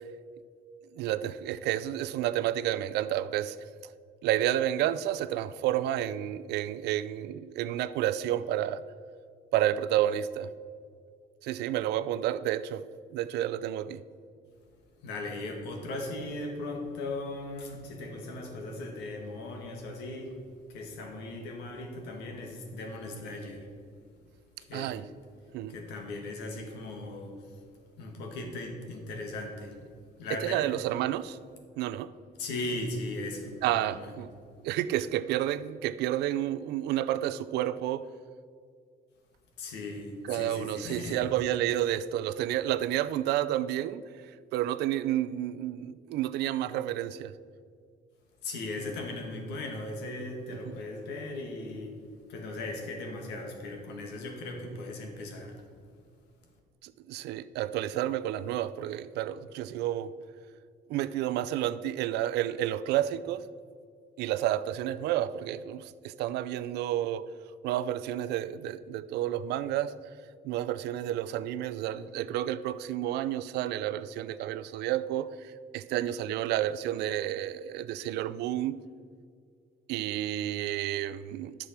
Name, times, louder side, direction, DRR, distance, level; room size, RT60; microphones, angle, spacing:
voice 1, 0.9-3.6 4.2-8.8 9.5-10.5 11.4-12.8 13.1-14.0 24.7-25.0 25.5-25.7 30.4-31.4 31.8-32.1 33.6-34.3 34.6-38.1 40.3-44.0 44.5-47.3 50.7-50.8 56.8-60.1 60.9-63.5 64.2-67.3 67.6-69.9 70.4-78.8 79.9-81.6, right 12 dB, 80° right, 0.5 m, -30 dB
voice 2, 15.0-20.4 20.7-23.7 24.6-24.9 25.7-27.6 28.0-29.8 30.2-30.7 32.4-34.1 39.6-41.3 48.4-52.0 52.3-55.6, left 2 dB, 85° left, 1.8 m, -38 dB
10.0 x 6.3 x 5.9 m
cardioid pair, 110°, 17 cm